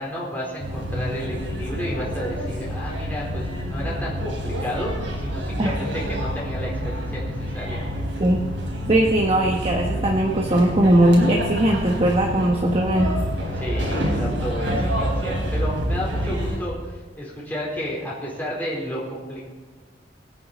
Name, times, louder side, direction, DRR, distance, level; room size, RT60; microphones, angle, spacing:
voice 1, 0.0-7.8 13.5-19.5, equal, 10° left, -5 dB, 4.1 m, -32 dB
sound 1, 0.6-16.6, equal, 85° right, 4.2 m, -28 dB
voice 2, 8.9-13.1, right 1 dB, 30° right, 0 dB, 1.1 m, -19 dB
25.0 x 9.3 x 4.2 m, 1.3 s
head